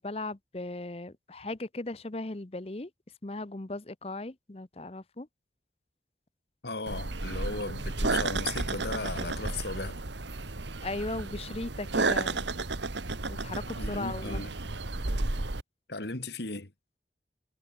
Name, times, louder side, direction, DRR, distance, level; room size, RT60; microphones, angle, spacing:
voice 1, 0.0-2.9 3.2-5.3 10.8-12.5 13.3-14.4, left 2 dB, 35° left, 0.8 m, -37 dB
voice 2, 6.6-10.0 13.8-14.6 15.9-16.7, left 3 dB, 65° left, 2.3 m, -36 dB
sound 1, 6.9-15.6, right 3 dB, 80° right, 1.7 m, -32 dB
head